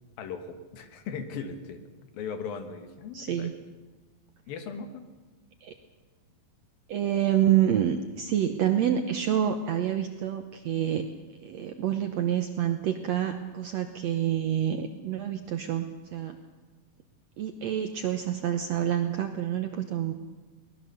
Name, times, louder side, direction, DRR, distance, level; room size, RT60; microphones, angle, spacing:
voice 1, 0.2-1.8 2.1-3.5 4.5-5.0, left 6 dB, 80° left, 7 dB, 3.3 m, -38 dB
voice 2, 3.1-3.5 5.6-5.7 6.9-11.1 11.4-16.4 17.4-20.1, right 10 dB, 70° right, 6 dB, 1.6 m, -27 dB
22.5 x 19.5 x 6.8 m, 1.2 s
omnidirectional pair, 4.2 m